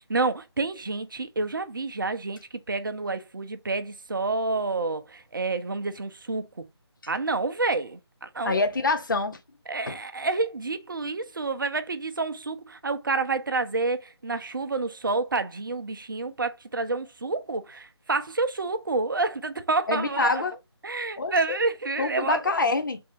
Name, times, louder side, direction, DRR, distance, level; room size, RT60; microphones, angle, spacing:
voice 1, 0.0-2.4 2.7-6.6 7.1-8.6 9.7-20.4 20.8-22.4, right 3 dB, 50° right, 0.5 m, -29 dB
voice 2, 8.4-9.4 9.9-10.0 19.9-20.6 21.2-21.3 22.0-23.0, left 3 dB, 45° left, 0.6 m, -25 dB
3.4 x 2.6 x 3.3 m
figure-of-eight pair, 155°, 14 cm